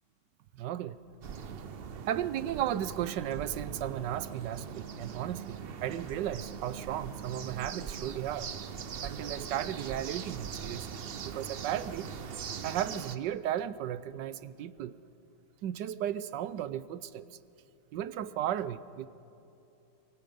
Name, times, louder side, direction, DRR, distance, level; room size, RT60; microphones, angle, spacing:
voice 1, 0.6-1.0 2.0-8.5 9.0-12.1 12.6-14.9 15.6-17.4 17.9-19.1, right 11 dB, 80° right, 15 dB, 1.3 m, -35 dB
sound 1, 1.2-13.2, right 7 dB, 60° right, 0.6 m, -41 dB
24.0 x 24.0 x 5.4 m, 2.9 s
omnidirectional pair, 1.9 m